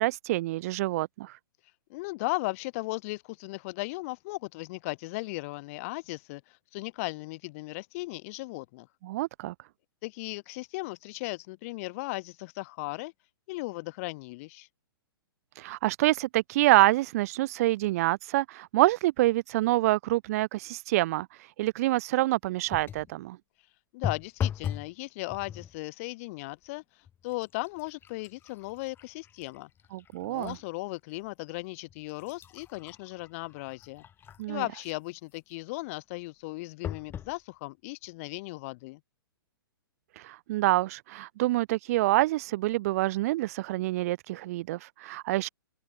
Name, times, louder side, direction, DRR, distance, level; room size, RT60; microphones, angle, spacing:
voice 1, 0.0-1.4 9.0-9.5 15.5-23.4 29.9-30.6 34.4-34.6 40.1-45.5, right 17 dB, 40° right, 0.7 m, -26 dB
voice 2, 1.6-8.9 10.0-13.1 13.5-14.7 23.6-29.7 30.2-34.0 34.5-39.0, left 23 dB, 40° left, 1.9 m, -37 dB
sound 1, 22.7-23.1 24.0-24.9 25.3-25.8 26.5-26.7 27.1-30.6 31.1-31.2 31.9-34.6 36.8-37.4 38.0-38.1 38.4-38.5, left 9 dB, 15° left, 5.2 m, -38 dB
figure-of-eight pair, 115°, 12 cm